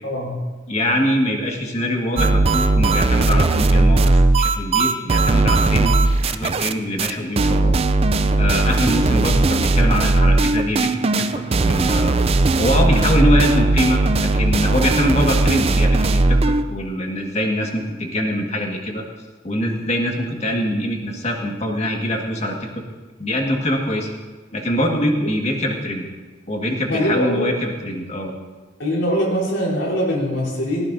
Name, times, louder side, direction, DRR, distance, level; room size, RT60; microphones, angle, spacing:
voice 1, 0.0-0.4 26.9-27.5 28.8-30.8, equal, 80° left, -3 dB, 4.0 m, -22 dB
voice 2, 0.7-5.9 6.2-7.8 8.3-11.3 11.6-12.2 12.6-19.0 19.4-22.8 23.2-24.1 24.5-26.1 26.5-28.3, left 1 dB, 40° left, 1 dB, 1.8 m, -23 dB
sound 1, 2.2-6.7 7.0-7.1 7.4-16.6, right 2 dB, 35° right, 0.4 m, -17 dB
18.0 x 15.5 x 2.7 m, 1.3 s
head